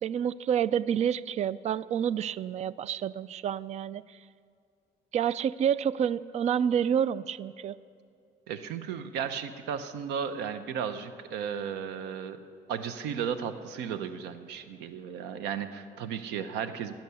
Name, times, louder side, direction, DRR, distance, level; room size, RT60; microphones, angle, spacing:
voice 1, 0.0-4.0 5.1-7.8, right 8 dB, 40° right, 19 dB, 0.4 m, -28 dB
voice 2, 8.5-12.4 12.7-16.9, right 7 dB, 90° right, 11 dB, 0.8 m, -34 dB
17.0 x 9.2 x 6.9 m, 2.3 s
cardioid pair, 110°, 17 cm